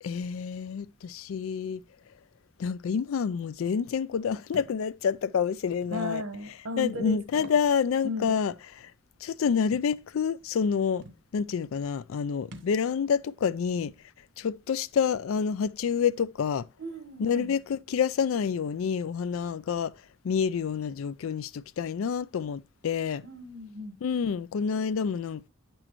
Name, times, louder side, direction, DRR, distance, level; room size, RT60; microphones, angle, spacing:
voice 1, 0.0-1.8 2.6-6.2 6.8-8.9 9.2-11.1 11.3-13.9 14.4-16.7 17.2-23.2 24.0-25.5, left 6 dB, 80° left, 0.4 m, -28 dB
Thump thud, 4.5-4.8 5.8-6.0 7.3-7.7 8.1-8.2 9.7-9.9 10.7-10.8 11.0-11.2 12.5-12.8, right 1 dB, 60° right, 0.8 m, -47 dB
voice 2, 5.9-7.5 8.0-8.3 16.8-17.5 23.2-24.0, left 1 dB, 80° right, 1.3 m, -36 dB
8.9 x 6.2 x 3.0 m
head